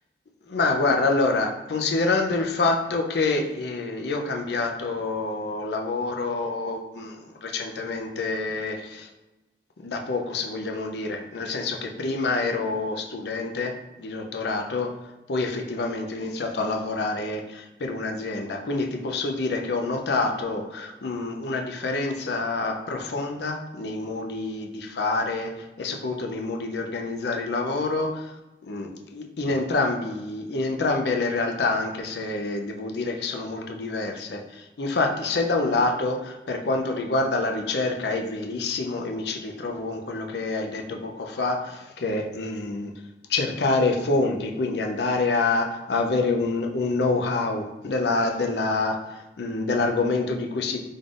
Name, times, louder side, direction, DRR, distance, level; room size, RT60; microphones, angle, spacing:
voice 1, 0.5-7.2 7.4-9.1 9.8-13.7 14.0-14.9 15.3-28.3 28.7-42.9 43.3-50.8, left 3 dB, 75° left, 3 dB, 0.5 m, -27 dB
3.6 x 2.4 x 3.7 m, 1.0 s
head